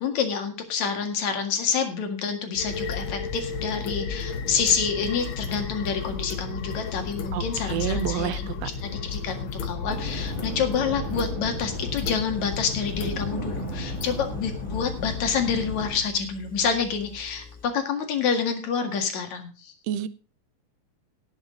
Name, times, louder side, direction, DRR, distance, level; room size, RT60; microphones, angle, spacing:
voice 1, 0.0-19.7, left 6 dB, 70° left, 6 dB, 3.2 m, -28 dB
sound 1, 2.5-15.9, left 5 dB, 55° left, 1.6 m, -33 dB
voice 2, 7.3-8.7 19.9-20.1, right 11 dB, 70° right, 15 dB, 1.8 m, -29 dB
sound 2, 9.8-16.0, right 2 dB, 25° right, 3.5 m, -37 dB
Engine, 11.9-17.7, left 5 dB, 5° left, 0.6 m, -47 dB
18.0 x 7.4 x 3.8 m, 0.34 s
omnidirectional pair, 3.3 m